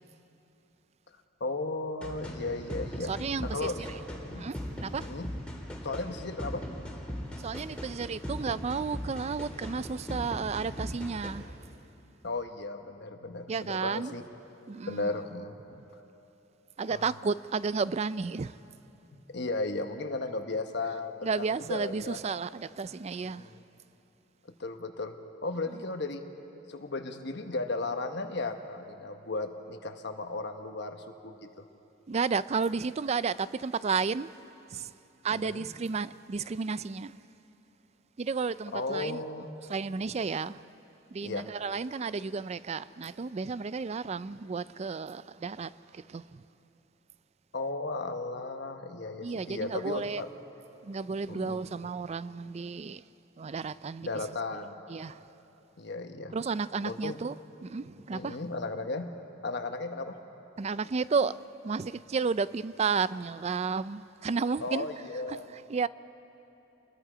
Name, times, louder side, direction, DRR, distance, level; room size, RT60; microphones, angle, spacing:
voice 1, 1.4-3.1 3.4-4.4 5.0-5.3 5.8-6.6 12.2-14.2 14.9-15.5 16.9-17.1 19.3-22.2 23.2-23.6 24.6-25.2 25.4-26.3 26.7-31.0 31.2-31.3 35.3-35.6 38.7-39.5 41.2-41.4 47.5-50.3 51.3-51.7 54.0-54.8 55.8-56.3 56.8-57.2 58.1-59.1 59.4-60.2 64.6-65.5, left 3 dB, 60° left, 1.1 m, -35 dB
sound 1, 2.0-11.3, equal, 5° left, 2.9 m, -39 dB
voice 2, 3.1-3.7 4.3-5.1 7.4-11.6 13.5-14.1 14.7-15.1 15.7-15.8 16.8-18.6 21.2-23.5 32.1-34.3 34.7-34.9 35.2-37.2 38.2-39.2 39.7-40.6 41.1-46.4 49.2-50.2 50.8-53.0 53.4-54.1 54.9-55.2 56.3-57.4 57.6-58.4 60.6-61.4 61.6-65.0 65.3-65.9, right 5 dB, 35° right, 0.4 m, -32 dB
28.0 x 21.5 x 5.0 m
head